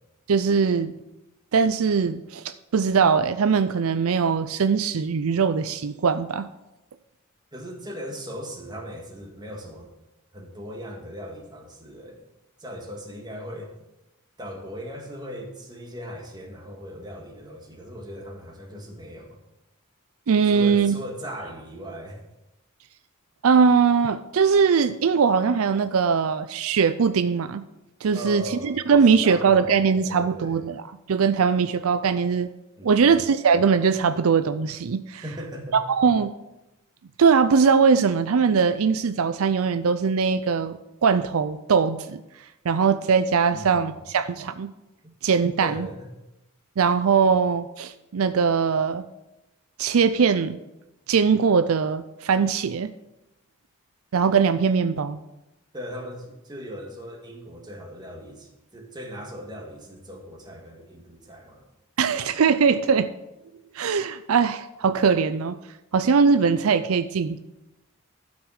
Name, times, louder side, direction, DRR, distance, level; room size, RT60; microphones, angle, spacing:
voice 1, 0.3-0.9 1.5-6.5 20.3-20.9 23.4-27.6 28.0-30.8 31.1-32.5 32.8-35.2 35.7-36.3 37.2-42.2 42.6-44.7 45.2-45.9 46.8-49.0 49.8-50.6 51.1-52.9 54.1-55.2 62.0-63.1 63.7-65.6 65.9-67.4, right 5 dB, 75° right, 12 dB, 0.5 m, -21 dB
voice 2, 7.5-9.9 10.3-12.2 12.6-13.7 14.4-19.4 20.4-22.2 28.1-28.8 29.2-29.7 30.0-30.6 32.8-33.2 35.2-35.8 43.5-44.0 45.0-45.1 45.6-46.1 47.2-47.3 55.7-61.7, equal, 20° right, 1 dB, 1.9 m, -38 dB
12.0 x 6.1 x 6.4 m, 0.95 s
head